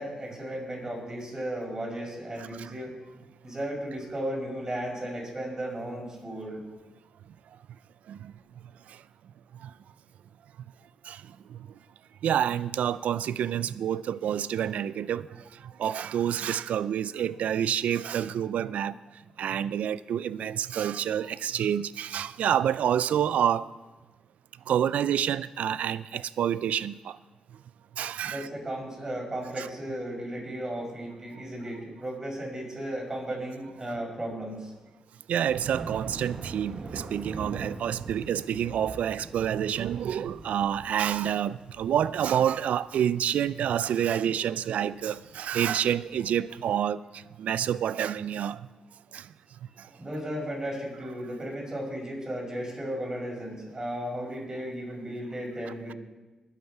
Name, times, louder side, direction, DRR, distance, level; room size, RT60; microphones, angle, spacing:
voice 1, 0.0-2.9 3.4-6.6 28.2-34.7 49.8-56.0, right 1 dB, 25° right, 5.6 m, -35 dB
voice 2, 12.2-15.3 15.8-18.9 19.4-23.7 24.7-27.2 28.0-28.5 29.6-29.7 35.3-47.0 47.4-48.6 49.1-49.2, right 9 dB, 85° right, 0.4 m, -28 dB
Thunder, 35.5-46.6, right 3 dB, 50° right, 1.1 m, -43 dB
20.5 x 8.3 x 4.7 m
cardioid pair, 80°, 2 cm